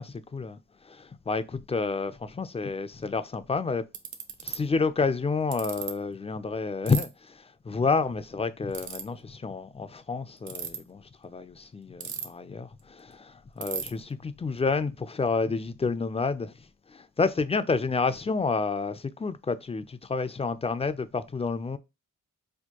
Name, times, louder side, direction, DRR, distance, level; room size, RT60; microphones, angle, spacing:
voice 1, 0.0-3.8 4.4-21.8, left 4 dB, 20° left, 0.3 m, -29 dB
Ratchet pawl, 3.2-3.3 3.9-4.6 5.5-5.9 6.9-7.0 8.7-9.0 10.4-10.8 12.0-12.5 12.8-12.9 13.1-13.2 13.6-13.9, right 7 dB, 65° right, 0.7 m, -34 dB
4.3 x 2.2 x 2.9 m
cardioid pair, 80°, 32 cm